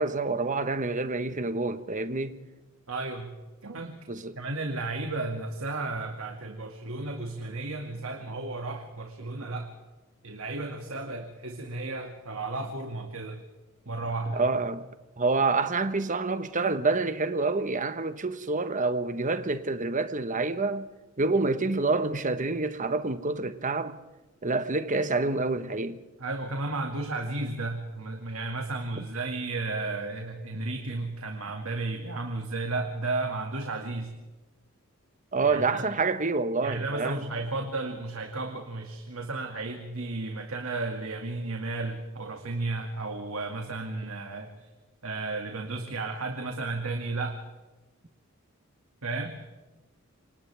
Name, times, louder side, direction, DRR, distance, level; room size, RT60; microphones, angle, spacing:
voice 1, 0.0-2.4 4.1-4.4 14.3-14.8 15.2-20.9 21.2-24.0 24.4-26.0 35.3-37.3, right 3 dB, 40° right, 1.3 m, -27 dB
voice 2, 2.9-3.3 3.6-4.0 4.4-9.7 10.2-13.4 13.9-14.4 26.2-34.1 35.4-35.9 36.6-44.5 45.0-47.4 49.0-49.3, right 2 dB, 85° right, 2.2 m, -33 dB
28.5 x 26.5 x 3.5 m
head